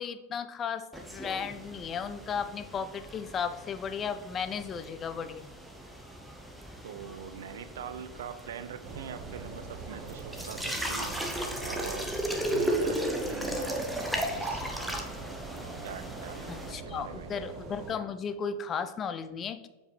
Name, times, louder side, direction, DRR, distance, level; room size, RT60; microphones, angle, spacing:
voice 1, 0.0-5.5 16.5-19.7, left 6 dB, 25° left, 11 dB, 0.4 m, -35 dB
sound 1, 0.9-16.7, right 1 dB, ahead, 0.8 m, -36 dB
voice 2, 6.8-11.3 11.6-15.1 15.8-17.3, right 8 dB, 60° right, 13 dB, 0.4 m, -43 dB
sound 2, 8.8-17.9, right 4 dB, 30° right, 0.8 m, -44 dB
6.7 x 5.0 x 3.3 m, 1.1 s
figure-of-eight pair, 90°, 0 cm